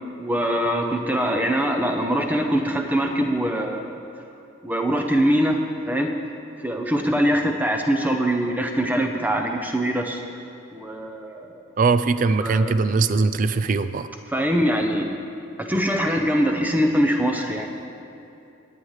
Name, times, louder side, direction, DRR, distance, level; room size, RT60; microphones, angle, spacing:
voice 1, 0.2-4.0 4.6-5.6 5.9-6.1 6.6-10.2 10.7-11.6 12.4-12.8 14.3-15.1 15.6-17.7, equal, 10° right, 3 dB, 0.7 m, -23 dB
voice 2, 11.8-14.1, right 4 dB, 40° right, 13 dB, 0.3 m, -21 dB
20.0 x 8.8 x 3.2 m, 2.7 s
head